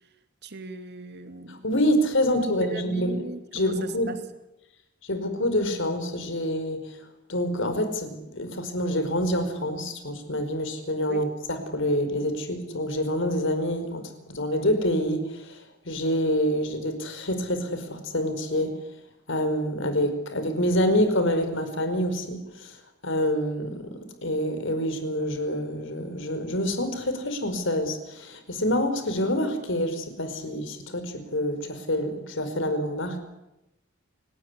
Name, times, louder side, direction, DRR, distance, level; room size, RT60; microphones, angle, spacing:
voice 1, 0.4-1.6 2.5-4.2 11.1-11.3, right 3 dB, 55° right, 2.5 m, -37 dB
voice 2, 1.5-3.3 3.5-4.2 5.0-7.0 7.3-18.8 19.3-22.8 23.0-33.2, equal, 70° left, 5.0 m, -27 dB
29.0 x 18.5 x 10.0 m
head